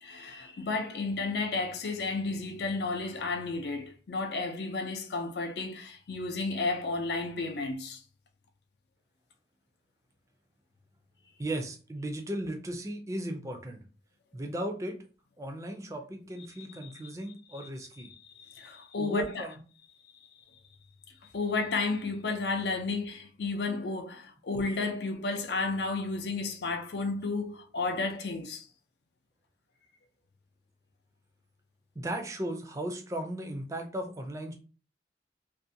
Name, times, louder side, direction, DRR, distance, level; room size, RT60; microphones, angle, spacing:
voice 1, 0.0-8.0 16.8-16.9 18.0-19.5 21.3-28.7, left 3 dB, 70° left, 0.4 m, -32 dB
voice 2, 11.4-13.8 14.3-15.0 15.4-18.1 19.0-19.5 32.0-34.5, right 1 dB, 15° right, 0.4 m, -36 dB
2.5 x 2.1 x 2.7 m
head